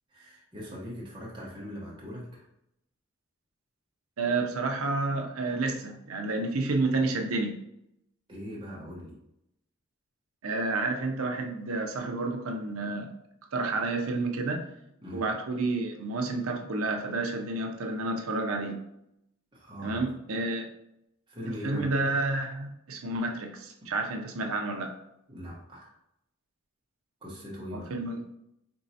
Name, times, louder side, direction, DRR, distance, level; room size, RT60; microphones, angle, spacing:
voice 1, 0.1-2.4 8.3-9.1 15.0-15.2 19.5-20.0 21.3-21.9 25.3-25.9 27.2-27.9, equal, 20° right, -4 dB, 1.0 m, -40 dB
voice 2, 4.2-7.6 10.4-13.1 13.5-14.6 15.1-18.8 19.8-20.7 21.6-24.9 27.7-28.2, right 2 dB, 80° right, 2 dB, 0.6 m, -30 dB
4.5 x 3.0 x 2.7 m, 0.81 s
head